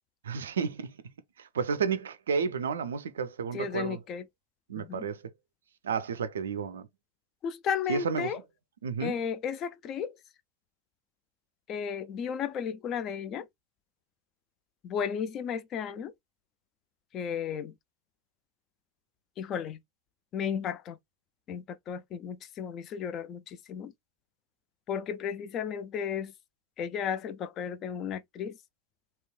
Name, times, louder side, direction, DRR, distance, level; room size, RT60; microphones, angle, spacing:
voice 1, 0.2-1.0 1.4-4.0 4.7-5.2 5.8-6.9 7.9-8.3 8.8-9.1, right 6 dB, 70° right, 0.3 m, -31 dB
voice 2, 3.5-4.3 4.8-5.1 7.4-8.4 9.0-10.1 11.7-13.5 14.8-16.1 17.1-17.7 19.4-19.8 20.3-21.0 21.5-23.9 24.9-26.3 26.8-28.6, left 7 dB, 35° left, 0.4 m, -34 dB
3.0 x 2.8 x 2.2 m
figure-of-eight pair, 85°, 0 cm